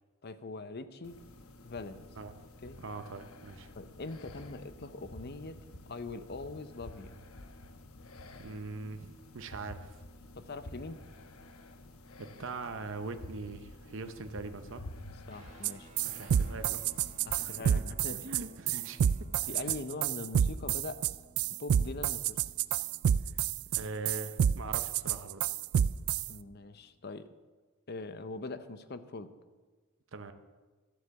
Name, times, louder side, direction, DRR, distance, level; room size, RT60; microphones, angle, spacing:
voice 1, 0.2-1.2 1.6-2.1 2.6-2.8 3.8-5.6 5.9-7.1 10.3-11.0 15.3-15.9 17.3-18.3 19.5-21.0 21.6-22.4 26.3-27.3 27.9-29.3, left 3 dB, 50° left, 12 dB, 0.7 m, -42 dB
sound 1, 1.0-17.4, left 1 dB, 80° left, 1.0 m, -50 dB
voice 2, 2.8-3.7 8.4-10.0 12.2-14.8 16.0-16.8 17.3-17.8 18.1-19.0 23.7-25.4 30.1-30.3, right 3 dB, 60° right, 8 dB, 0.7 m, -42 dB
sound 2, 15.3-27.0, right 1 dB, 35° right, 1.5 m, -60 dB
sound 3, 15.6-15.7 16.0-26.3, right 9 dB, 85° right, 0.3 m, -28 dB
12.5 x 8.2 x 6.9 m, 1.3 s
head